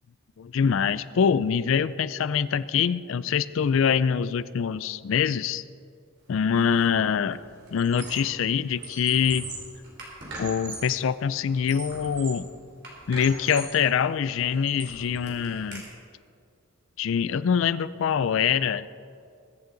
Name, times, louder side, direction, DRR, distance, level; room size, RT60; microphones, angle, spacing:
voice 1, 0.4-5.6 6.3-7.4 7.7-9.5 10.4-12.5 13.1-15.8 17.0-18.9, left 7 dB, 70° left, 17 dB, 0.4 m, -24 dB
Squeak, 6.6-6.9 7.2-8.4 8.7-11.0 11.5-12.5 12.8-13.8 14.3-15.8, right 3 dB, 50° right, 3.3 m, -40 dB
22.0 x 8.2 x 3.9 m, 2.3 s
head